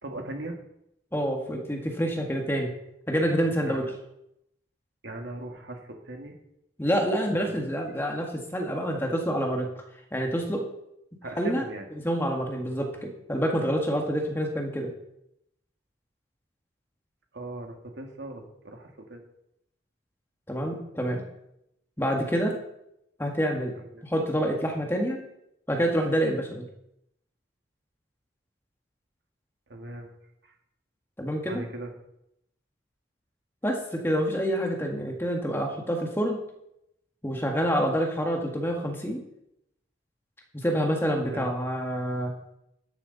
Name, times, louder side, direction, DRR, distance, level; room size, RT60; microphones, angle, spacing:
voice 1, 0.0-0.6 3.6-3.9 5.0-6.4 7.3-7.5 7.8-7.9 11.2-11.9 17.3-19.2 23.8-24.1 29.7-30.1 30.4-30.5 31.4-31.9 41.2-41.5, right 1 dB, 80° right, 2 dB, 2.2 m, -39 dB
voice 2, 1.1-2.7 3.1-3.8 6.8-9.7 10.1-10.7 11.4-11.6 11.9-14.9 20.5-21.2 22.0-22.6 23.2-23.7 24.0-25.2 25.7-26.6 31.2-31.6 33.6-36.4 37.2-39.2 40.5-42.3, equal, 15° left, 1 dB, 1.8 m, -27 dB
13.0 x 10.5 x 4.1 m, 0.80 s
head